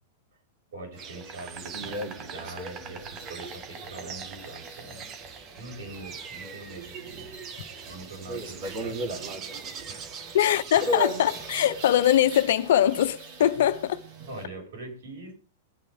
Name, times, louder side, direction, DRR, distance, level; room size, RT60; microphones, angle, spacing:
voice 1, 0.7-5.1 5.5-7.3 7.9-9.3 9.9-10.4 11.3-11.4 13.4-13.5 14.3-15.3, right 2 dB, 70° right, 7.3 m, -43 dB
sound 1, 0.9-14.4, right 1 dB, 50° right, 3.8 m, -38 dB
Insect, 1.0-12.2, right 7 dB, 35° right, 1.6 m, -43 dB
voice 2, 10.3-14.0, left 11 dB, 65° left, 1.1 m, -22 dB
21.5 x 8.6 x 3.9 m
hypercardioid pair, 100°, 0 cm